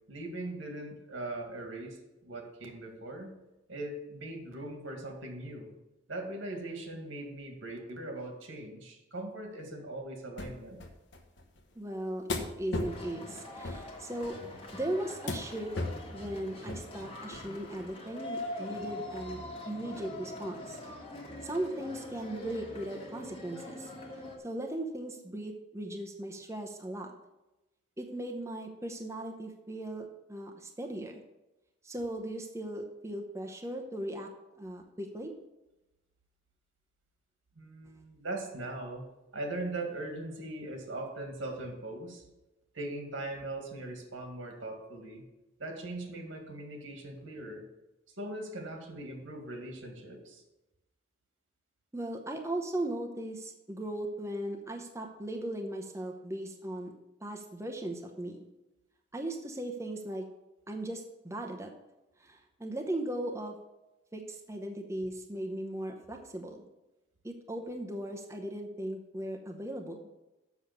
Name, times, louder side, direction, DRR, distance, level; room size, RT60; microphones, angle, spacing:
voice 1, 0.1-2.0 2.2-3.3 3.7-5.7 6.1-10.8 37.6-39.0 39.3-42.2 42.7-45.2 45.6-47.6 48.2-50.4, right 2 dB, 90° right, 3 dB, 2.1 m, -40 dB
sound 1, 10.4-10.5 10.8-11.6 12.3-13.0 13.6-13.8 14.2-14.8 15.3-15.5 15.8-16.1 16.7-16.9 17.3-17.5 17.8-17.9, left 2 dB, 65° left, 1.1 m, -35 dB
voice 2, 11.8-14.4 14.7-15.7 16.1-20.8 21.4-23.9 24.4-27.1 28.0-31.2 31.8-34.3 34.6-35.3 51.9-56.9 57.2-58.4 59.1-60.3 60.7-61.7 62.2-63.6 64.1-66.6 67.2-70.1, right 1 dB, 15° right, 2 dB, 0.8 m, -38 dB
sound 2, 12.8-24.4, left 1 dB, 30° left, 1.5 m, -43 dB
7.1 x 6.3 x 6.8 m, 0.99 s
head